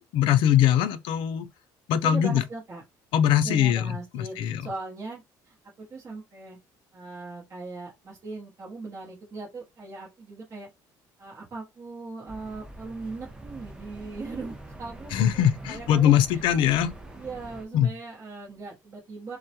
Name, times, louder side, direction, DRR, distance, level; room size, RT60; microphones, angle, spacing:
voice 1, 0.1-1.5 1.9-2.4 3.1-4.6 15.1-16.9 17.7-17.9, left 10 dB, 75° left, 0.4 m, -22 dB
voice 2, 2.0-2.8 3.4-6.6 6.9-10.7 11.2-16.4 17.2-19.4, right 3 dB, 40° right, 0.8 m, -39 dB
sound 1, 12.3-17.7, right 1 dB, 10° right, 0.6 m, -44 dB
2.2 x 2.0 x 2.7 m
cardioid pair, 100°, 9 cm